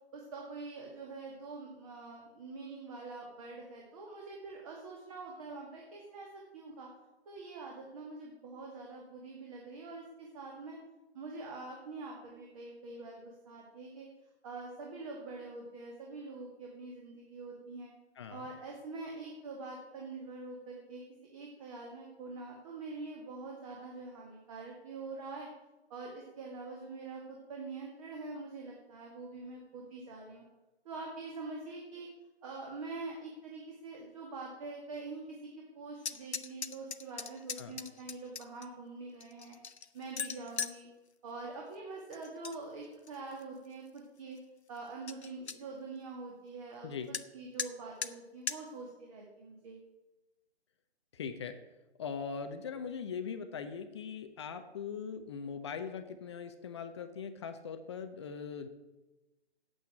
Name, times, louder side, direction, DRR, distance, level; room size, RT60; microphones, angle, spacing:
voice 1, 0.1-6.3 6.5-6.9 7.3-10.8 11.1-14.1 14.4-17.9 18.3-21.0 21.3-25.5 25.9-30.4 30.8-32.1 32.4-35.4 35.7-39.6 39.9-40.9 41.2-44.4 44.7-49.8, right 3 dB, 30° right, -1 dB, 2.2 m, -45 dB
voice 2, 18.2-18.5 37.6-37.8 46.8-47.1 51.1-51.6 52.0-58.7, left 6 dB, 25° left, 9 dB, 0.8 m, -41 dB
sound 1, 36.0-38.7 39.2-40.8 42.1-42.6 42.9-43.4 44.0-44.1 44.4-44.5 44.8-44.9 45.1-45.6 47.1-47.3 47.6-47.7 48.0-48.1 48.5-48.6, left 6 dB, 80° left, 0.9 m, -39 dB
9.2 x 8.0 x 8.9 m, 1.0 s
figure-of-eight pair, 145°, 33 cm